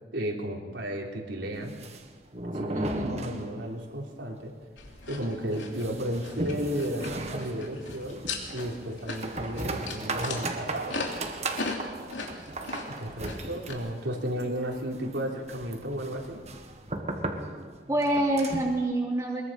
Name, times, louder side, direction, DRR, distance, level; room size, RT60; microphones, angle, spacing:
voice 1, 0.1-1.8 2.5-4.5 5.1-8.2 8.5-11.4 13.0-16.4, equal, 85° right, -1 dB, 3.8 m, -33 dB
sound 1, 1.6-3.9 4.2-4.3 4.6-4.7 5.2-18.8, right 2 dB, 35° right, 1.8 m, -37 dB
voice 2, 2.7-3.2 13.4-13.6 17.9-19.4, right 1 dB, 15° right, -2 dB, 3.0 m, -27 dB
sound 2, 4.8-13.7, left 3 dB, 90° left, 3.2 m, -39 dB
23.0 x 22.0 x 5.9 m, 1.4 s
head